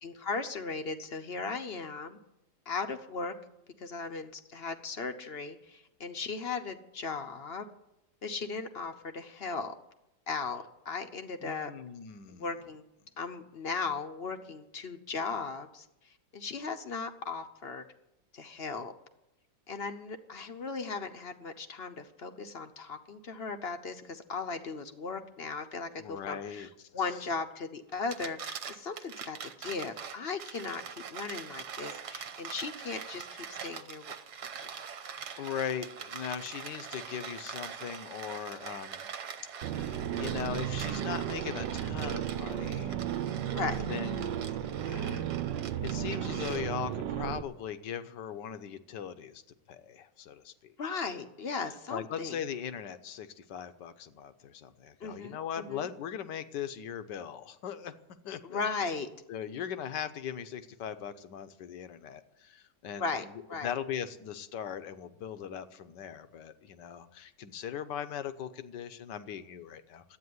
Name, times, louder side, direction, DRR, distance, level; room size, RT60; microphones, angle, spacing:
voice 1, 0.0-2.2 2.7-3.3 3.8-7.7 8.2-9.7 10.3-11.7 12.4-12.8 13.2-17.8 18.3-18.9 19.7-34.1 34.6-34.7 43.5-43.9 50.8-52.4 55.0-55.9 58.4-59.1 63.0-63.7, left 4 dB, 45° left, 8 dB, 0.8 m, -37 dB
voice 2, 11.4-12.5 26.0-26.7 35.4-39.1 39.9-43.2 43.9-45.3 45.8-49.4 49.7-50.7 51.9-57.9 58.2-58.6 59.3-70.2, left 8 dB, 75° left, 11 dB, 1.5 m, -39 dB
sound 1, 27.9-47.0, right 7 dB, 65° right, 1.5 m, -43 dB
sound 2, 39.6-47.4, right 10 dB, 80° right, 1.4 m, -34 dB
12.5 x 9.0 x 9.4 m, 0.87 s
omnidirectional pair, 1.9 m